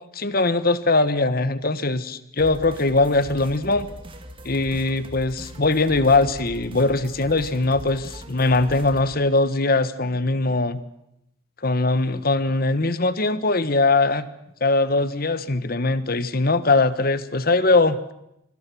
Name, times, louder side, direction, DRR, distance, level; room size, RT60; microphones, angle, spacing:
voice 1, 0.0-3.9 4.4-10.8 11.6-14.3 14.6-18.1, left 3 dB, 50° left, 13 dB, 1.3 m, -21 dB
sound 1, 2.4-9.0, equal, 25° right, 2.2 m, -40 dB
25.0 x 24.5 x 6.2 m, 0.81 s
head